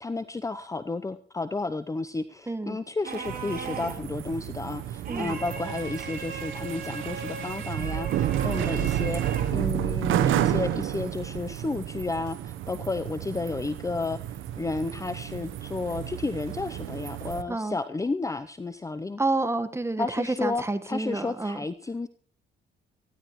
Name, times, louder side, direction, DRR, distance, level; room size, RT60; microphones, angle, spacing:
voice 1, 0.0-9.2 9.5-14.2 14.6-19.2 20.0-22.1, left 3 dB, 15° left, 12 dB, 0.6 m, -32 dB
voice 2, 2.5-2.8 5.1-5.3 17.5-17.8 19.2-21.6, right 2 dB, 15° right, 9 dB, 1.4 m, -29 dB
sound 1, 3.0-4.1 5.0-9.7, right 5 dB, 50° right, 3.2 m, -38 dB
sound 2, 3.3-17.4, right 11 dB, 80° right, 1.0 m, -31 dB
19.5 x 15.0 x 3.1 m, 0.42 s
cardioid pair, 90°, 20 cm